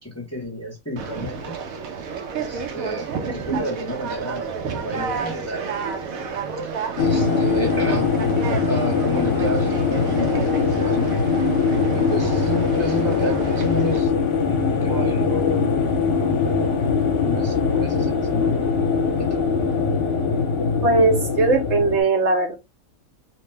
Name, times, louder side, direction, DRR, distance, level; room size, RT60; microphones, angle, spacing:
voice 1, 0.0-1.6 2.4-5.7 7.0-8.1 8.7-11.1 11.9-14.1 14.5-15.7 17.2-18.6 19.2-19.4, equal, 15° left, 0.6 m, -30 dB
Conversation, 1.0-14.0, right 5 dB, 85° right, 1.0 m, -31 dB
sound 1, 7.0-22.0, left 5 dB, 55° left, 0.8 m, -21 dB
voice 2, 20.8-22.5, right 3 dB, 65° right, 0.8 m, -19 dB
2.9 x 2.1 x 3.1 m
omnidirectional pair, 1.4 m